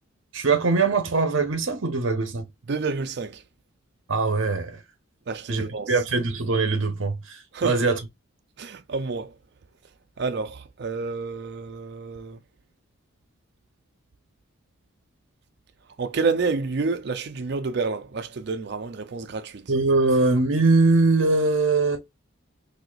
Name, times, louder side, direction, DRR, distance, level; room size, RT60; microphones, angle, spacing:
voice 1, 0.3-2.4 4.1-4.8 5.5-8.0 19.7-22.0, right 3 dB, 70° right, 0.8 m, -22 dB
voice 2, 2.7-3.4 5.3-5.9 7.5-7.8 8.6-9.3 10.2-12.4 16.0-19.7, right 4 dB, 55° right, 0.4 m, -29 dB
4.2 x 2.7 x 2.3 m
head